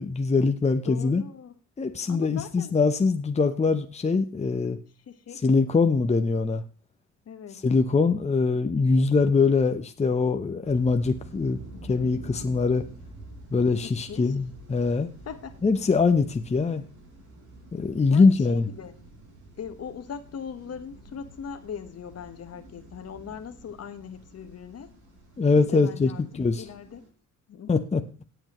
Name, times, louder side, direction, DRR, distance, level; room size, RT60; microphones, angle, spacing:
voice 1, 0.0-1.2 1.8-4.8 5.4-6.6 7.6-11.6 11.9-12.8 13.5-15.1 15.6-16.8 17.7-18.7 25.4-26.7 27.7-28.0, left 4 dB, 20° left, 7 dB, 0.9 m, -23 dB
voice 2, 0.9-1.5 2.1-2.7 5.1-5.4 7.2-7.7 13.8-14.3 15.3-15.6 18.1-19.0 19.6-24.9 25.4-26.2 26.6-27.0 27.5-27.7, left 7 dB, 55° left, 9 dB, 1.4 m, -40 dB
sound 1, 10.6-27.1, right 1 dB, 75° right, 5.7 m, -48 dB
17.0 x 8.1 x 3.1 m, 0.36 s
cardioid pair, 90°, 30 cm